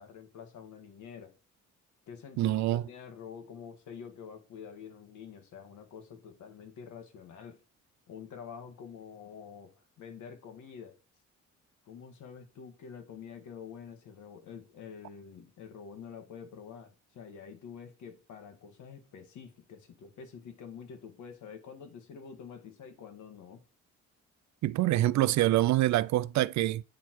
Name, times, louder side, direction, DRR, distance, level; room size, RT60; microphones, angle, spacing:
voice 1, 0.0-1.4 2.1-7.6 8.1-10.9 11.8-23.6, left 7 dB, 75° left, 1.6 m, -47 dB
voice 2, 2.4-2.8 24.6-26.8, right 15 dB, 70° right, 0.4 m, -25 dB
8.4 x 4.3 x 4.5 m
cardioid pair, 90°, 30 cm